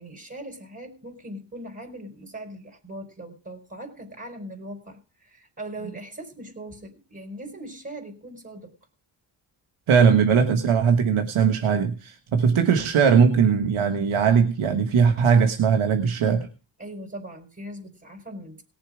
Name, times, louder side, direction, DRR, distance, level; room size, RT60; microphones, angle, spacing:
voice 1, 0.0-8.7 16.8-18.6, right 1 dB, 20° right, 2 dB, 4.3 m, -40 dB
voice 2, 9.9-16.5, right 6 dB, 75° right, 6 dB, 1.5 m, -20 dB
18.0 x 7.3 x 4.9 m, 0.32 s
supercardioid pair, 50°, 50 cm